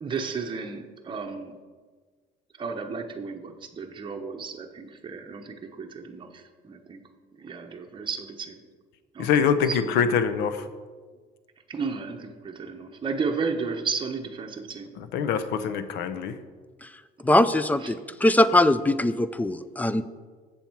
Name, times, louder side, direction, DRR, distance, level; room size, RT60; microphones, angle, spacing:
voice 1, 0.0-1.5 2.5-7.0 7.3-8.6 9.1-10.0 11.7-14.9 17.8-18.0, right 5 dB, 30° right, 3 dB, 0.8 m, -33 dB
voice 2, 9.2-10.7 15.1-16.4, left 7 dB, 90° left, 12 dB, 0.6 m, -24 dB
voice 3, 17.2-20.1, left 1 dB, 10° left, 14 dB, 0.3 m, -21 dB
7.1 x 7.0 x 4.5 m, 1.5 s
cardioid pair, 110°, 17 cm